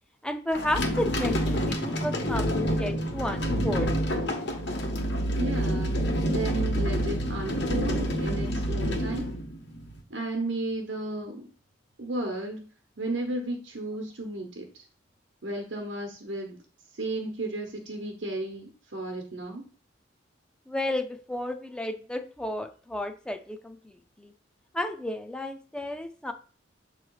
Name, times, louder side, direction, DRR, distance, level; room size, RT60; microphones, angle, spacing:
voice 1, 0.2-3.9 20.7-24.3 24.7-26.3, left 1 dB, 5° left, 6 dB, 0.4 m, -32 dB
sound 1, 0.5-10.0, equal, 65° left, 1.3 m, -28 dB
voice 2, 5.4-9.3 10.1-11.5 12.0-12.7 13.0-14.8 15.4-16.6 16.9-19.6, right 2 dB, 80° right, 3 dB, 1.0 m, -33 dB
6.9 x 3.1 x 4.7 m, 0.39 s
head